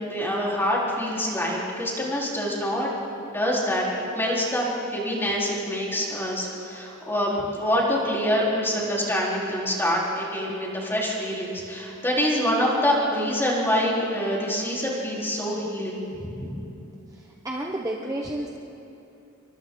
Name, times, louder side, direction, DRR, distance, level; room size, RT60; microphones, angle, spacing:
voice 1, 0.0-2.9 3.3-16.5, equal, 10° left, -5 dB, 4.3 m, -26 dB
voice 2, 17.4-18.5, right 1 dB, 15° right, -1 dB, 1.2 m, -30 dB
28.5 x 24.0 x 4.0 m, 2.8 s
head